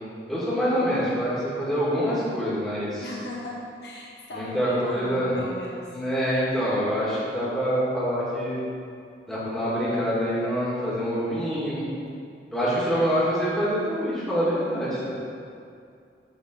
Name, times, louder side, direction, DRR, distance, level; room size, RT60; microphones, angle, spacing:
voice 1, 0.3-3.0 4.3-5.3 5.9-8.6 9.3-11.9 12.5-15.1, equal, ahead, -10 dB, 2.0 m, -25 dB
voice 2, 3.0-5.9, left 1 dB, 65° left, -4 dB, 1.3 m, -37 dB
8.8 x 4.1 x 6.1 m, 2.4 s
head